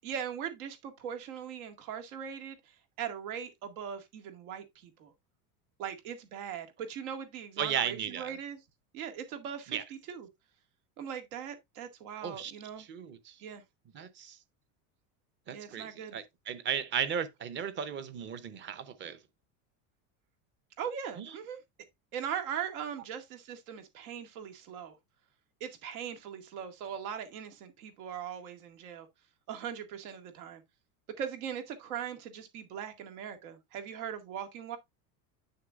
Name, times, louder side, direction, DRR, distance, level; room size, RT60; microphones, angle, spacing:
voice 1, 0.0-5.1 5.8-8.6 8.9-10.3 11.0-12.9 13.4-13.6 15.5-16.2 20.8-21.6 22.1-25.0 25.6-29.1 29.5-30.6 31.2-34.8, right 8 dB, 80° right, 2.0 m, -40 dB
voice 2, 7.6-8.3 9.7-9.8 12.2-12.5 12.8-13.4 13.9-14.4 15.5-19.2 21.2-21.3, right 8 dB, 25° right, 0.7 m, -35 dB
8.8 x 6.6 x 2.4 m
supercardioid pair, 155°, 43 cm